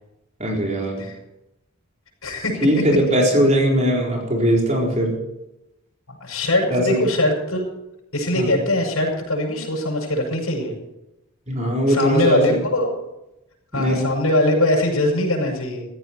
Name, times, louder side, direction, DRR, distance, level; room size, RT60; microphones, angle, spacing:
voice 1, 0.4-1.0 2.6-5.2 6.7-7.0 8.4-8.5 11.5-12.6 13.7-14.0, equal, 35° right, -1 dB, 4.3 m, -20 dB
voice 2, 2.2-2.6 6.1-7.7 8.1-10.8 11.9-13.0 13.7-15.8, left 1 dB, 75° left, -1 dB, 7.1 m, -21 dB
16.5 x 14.5 x 4.7 m, 0.88 s
head